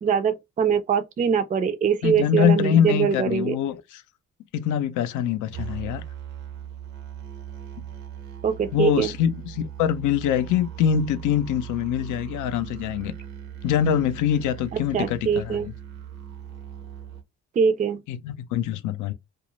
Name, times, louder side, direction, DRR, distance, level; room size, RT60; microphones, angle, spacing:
voice 1, 0.0-3.6 8.4-9.1 14.7-15.7 17.6-18.0, right 7 dB, 25° right, 0.4 m, -23 dB
voice 2, 2.0-4.0 4.5-6.0 7.8-7.9 8.7-13.1 13.6-15.7 18.1-19.1, left 9 dB, 80° left, 0.5 m, -24 dB
sound 1, 5.5-17.2, right 9 dB, 65° right, 0.7 m, -39 dB
2.3 x 2.0 x 3.0 m
cardioid pair, 90°, 30 cm